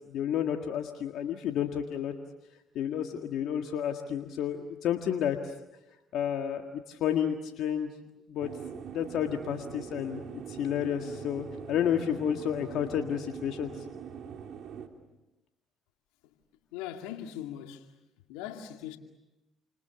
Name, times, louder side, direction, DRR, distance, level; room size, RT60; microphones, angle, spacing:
voice 1, 0.1-2.1 2.8-5.5 6.1-7.9 8.3-8.5 8.9-10.2 10.5-13.7, left 9 dB, 70° left, 1.8 m, -31 dB
sound 1, 8.4-14.9, right 8 dB, 65° right, 3.1 m, -43 dB
voice 2, 16.7-17.9 18.3-19.0, left 11 dB, 90° left, 2.3 m, -40 dB
29.5 x 27.0 x 7.1 m
supercardioid pair, 60°, 0 cm